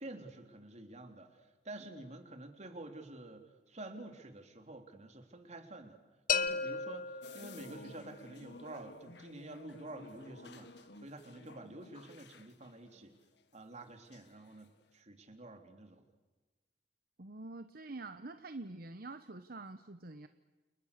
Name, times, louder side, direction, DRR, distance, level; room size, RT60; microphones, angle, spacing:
voice 1, 0.0-6.0 6.3-13.1 13.5-16.0, right 2 dB, 40° right, 6 dB, 3.4 m, -49 dB
sound 1, 6.3-8.1, left 6 dB, 50° left, 1.2 m, -35 dB
sound 2, 7.2-13.8 14.1-14.6, left 2 dB, 70° left, 1.9 m, -54 dB
voice 2, 17.2-20.3, right 2 dB, 60° right, 9 dB, 1.1 m, -46 dB
29.5 x 29.5 x 6.8 m, 1.2 s
head